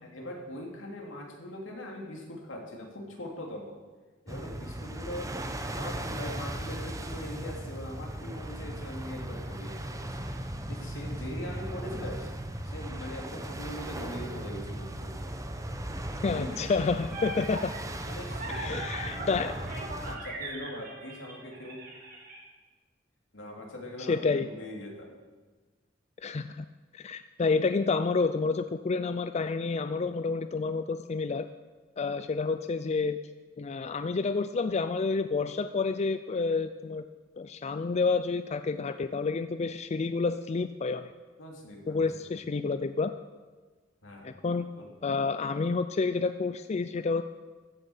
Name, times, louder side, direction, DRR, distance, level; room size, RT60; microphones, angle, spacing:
voice 1, 0.0-3.8 4.2-10.1 10.7-12.3 12.6-15.3 16.3-16.6 18.1-19.5 20.0-21.8 23.3-25.1 41.4-42.1 44.0-44.3 44.8-44.9, left 1 dB, 85° left, 0 dB, 2.9 m, -41 dB
sound 1, 4.3-20.2, right 1 dB, 15° right, 1.0 m, -37 dB
voice 2, 16.2-17.7 18.5-19.5 24.1-24.5 26.2-26.7 26.9-31.5 32.0-33.2 33.6-37.1 37.4-41.1 41.9-43.1 44.2-44.7 45.0-47.2, left 4 dB, 35° left, 10 dB, 0.4 m, -29 dB
sound 2, 16.6-22.4, right 2 dB, 50° right, 4.5 m, -40 dB
14.5 x 7.4 x 7.2 m, 1.3 s
head